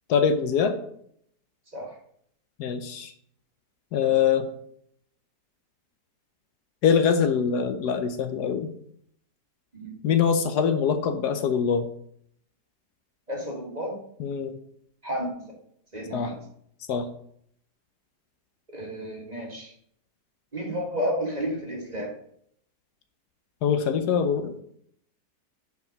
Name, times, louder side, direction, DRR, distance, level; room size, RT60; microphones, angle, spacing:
voice 1, 0.1-0.8 2.6-3.1 3.9-4.5 6.8-8.7 10.0-11.9 14.2-14.6 16.1-16.3 16.9-17.0 23.6-24.6, left 7 dB, 75° left, 8 dB, 1.3 m, -23 dB
voice 2, 13.3-14.0 15.0-15.3 15.9-16.4 18.7-19.7 20.5-22.1, equal, 25° right, -1 dB, 1.5 m, -31 dB
5.4 x 5.3 x 5.0 m, 0.66 s
omnidirectional pair, 1.8 m